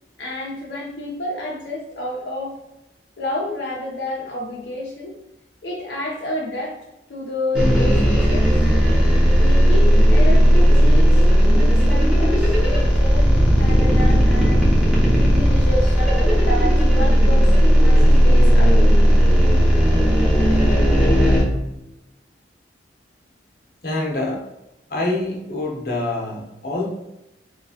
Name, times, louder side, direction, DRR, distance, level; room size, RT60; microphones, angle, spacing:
voice 1, 0.2-2.5 3.2-5.2 5.6-6.8 7.1-8.5 9.3-11.3 11.5-14.6 15.2-18.9, left 1 dB, 80° left, -4 dB, 0.6 m, -29 dB
sound 1, 7.5-21.4, equal, 5° right, 0.8 m, -15 dB
voice 2, 23.8-24.4 24.9-26.9, left 2 dB, 55° left, -2 dB, 0.9 m, -26 dB
3.2 x 2.9 x 2.8 m, 0.91 s
head